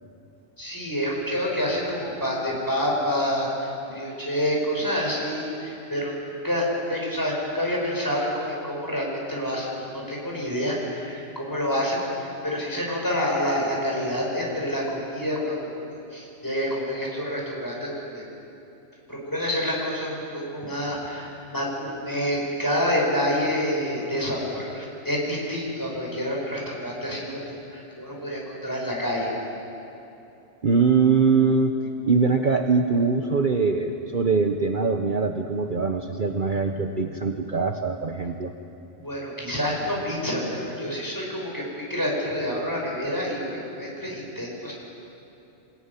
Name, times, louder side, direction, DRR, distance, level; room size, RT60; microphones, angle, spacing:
voice 1, 0.6-18.2 19.1-29.3 39.0-44.7, equal, 15° left, -3 dB, 6.3 m, -28 dB
voice 2, 30.6-31.7 32.1-38.5, right 4 dB, 45° right, 5 dB, 1.1 m, -22 dB
24.5 x 20.5 x 9.8 m, 2.8 s
omnidirectional pair, 1.2 m